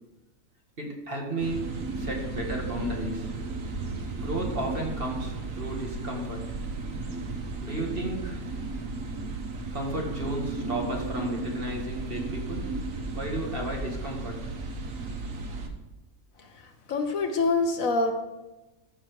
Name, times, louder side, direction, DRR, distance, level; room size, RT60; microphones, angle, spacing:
voice 1, 0.8-3.3 4.2-6.5 7.6-8.4 9.7-12.7 13.2-14.5, right 1 dB, 40° right, 0 dB, 2.0 m, -33 dB
sound 1, 1.4-15.7, right 3 dB, 65° right, 1.5 m, -34 dB
voice 2, 16.4-18.1, left 3 dB, 70° left, 5 dB, 1.4 m, -26 dB
13.5 x 5.9 x 4.9 m, 1.1 s
omnidirectional pair, 1.5 m